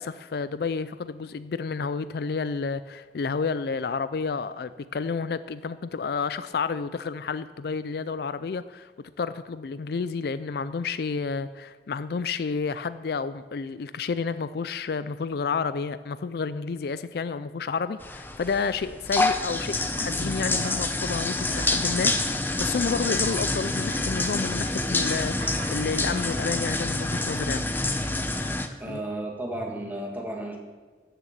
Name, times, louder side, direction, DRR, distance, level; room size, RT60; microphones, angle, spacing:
voice 1, 0.0-8.9 9.2-27.7 28.9-29.0, left 5 dB, 60° left, 14 dB, 0.4 m, -30 dB
sound 1, 18.0-28.7, left 2 dB, 10° left, 0.7 m, -27 dB
sound 2, 20.3-22.2 22.5-27.2, right 2 dB, 70° right, 1.5 m, -46 dB
voice 2, 28.8-30.6, right 1 dB, 10° right, 0 dB, 1.9 m, -33 dB
13.5 x 6.8 x 7.3 m, 1.4 s
head